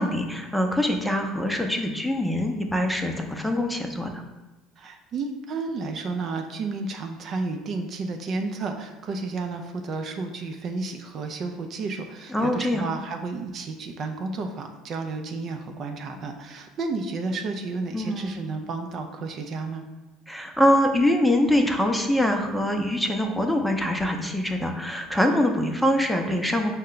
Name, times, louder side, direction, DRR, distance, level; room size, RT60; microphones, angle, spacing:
voice 1, 0.0-4.1 12.3-12.9 17.9-18.4 20.3-26.7, left 1 dB, 5° left, 3 dB, 0.6 m, -24 dB
voice 2, 4.8-19.9, right 3 dB, 50° right, 4 dB, 0.4 m, -32 dB
5.4 x 2.1 x 3.8 m, 1.1 s
hypercardioid pair, 75°, 0 cm